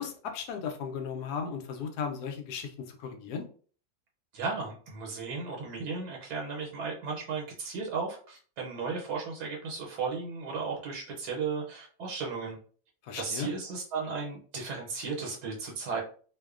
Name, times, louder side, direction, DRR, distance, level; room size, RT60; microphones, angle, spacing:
voice 1, 0.0-3.5 13.0-13.5, left 6 dB, 80° left, 5 dB, 1.1 m, -36 dB
voice 2, 4.3-12.6 13.2-16.0, right 4 dB, 85° right, -2 dB, 1.3 m, -35 dB
2.9 x 2.1 x 2.3 m, 0.42 s
omnidirectional pair, 1.7 m